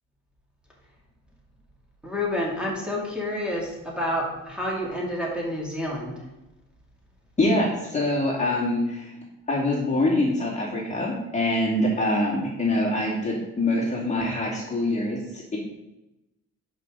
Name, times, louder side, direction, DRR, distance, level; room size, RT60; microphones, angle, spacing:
voice 1, 2.0-6.2, left 1 dB, 5° right, -4 dB, 2.7 m, -29 dB
voice 2, 7.4-9.1 9.5-15.6, left 1 dB, 25° left, -5 dB, 2.4 m, -24 dB
11.0 x 5.5 x 3.9 m, 0.93 s
cardioid pair, 90°, 30 cm